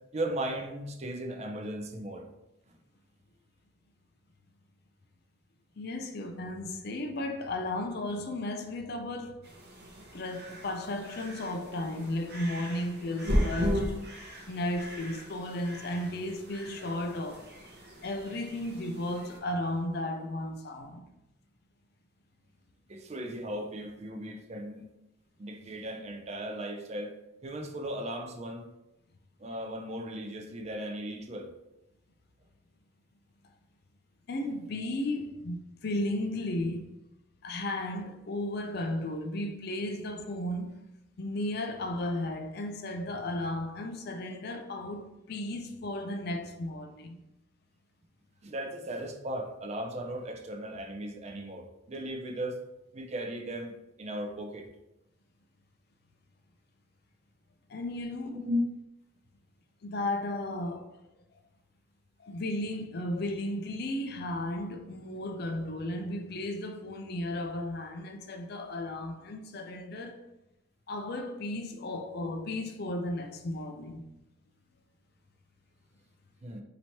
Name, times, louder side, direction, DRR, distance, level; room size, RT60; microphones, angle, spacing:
voice 1, 0.1-2.3 22.9-24.9 25.4-27.1 27.4-28.7 29.4-31.5 48.4-52.6 52.9-53.7 54.0-54.7 58.3-58.6 73.8-73.9 76.4-76.6, equal, 30° right, 0.4 m, -36 dB
voice 2, 5.8-9.5 10.1-14.0 14.5-17.5 18.0-21.1 34.3-36.9 37.4-40.8 41.2-47.2 57.7-58.5 59.8-61.0 62.2-70.3 70.9-74.0, left 1 dB, 50° left, 0.4 m, -34 dB
sound 1, 9.4-19.4, equal, 50° right, 0.8 m, -36 dB
3.0 x 2.8 x 4.3 m
head